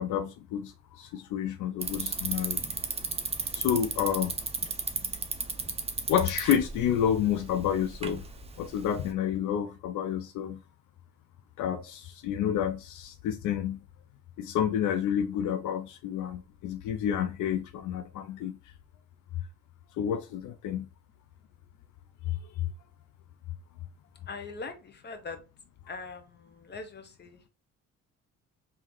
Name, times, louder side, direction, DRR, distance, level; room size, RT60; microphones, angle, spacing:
voice 1, 0.0-2.6 3.5-4.4 6.1-8.2 8.6-10.6 11.6-13.8 14.4-18.6 20.0-20.9, left 9 dB, 80° left, 0.5 m, -29 dB
Bicycle, 1.8-9.1, right 4 dB, 20° right, 0.6 m, -35 dB
voice 2, 24.3-24.7 25.0-25.4 25.9-26.2 26.7-27.4, left 4 dB, 35° left, 0.9 m, -40 dB
3.7 x 2.8 x 3.0 m
cardioid pair, 90°, 30 cm